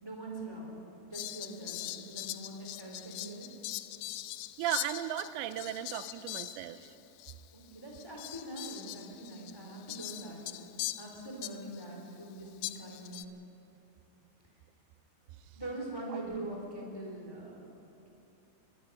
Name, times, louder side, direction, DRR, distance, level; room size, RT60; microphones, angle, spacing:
voice 1, 0.0-0.7 1.1-3.5 7.5-10.7 11.0-13.3 15.5-17.7, right 1 dB, 5° left, -1 dB, 2.8 m, -43 dB
Fowl, 1.1-6.9 7.2-7.3 7.9-11.9 12.6-13.3, left 16 dB, 80° left, 2.6 m, -42 dB
voice 2, 4.6-6.8, right 12 dB, 90° right, 12 dB, 3.0 m, -35 dB
22.5 x 12.0 x 9.6 m, 2.9 s
omnidirectional pair, 5.0 m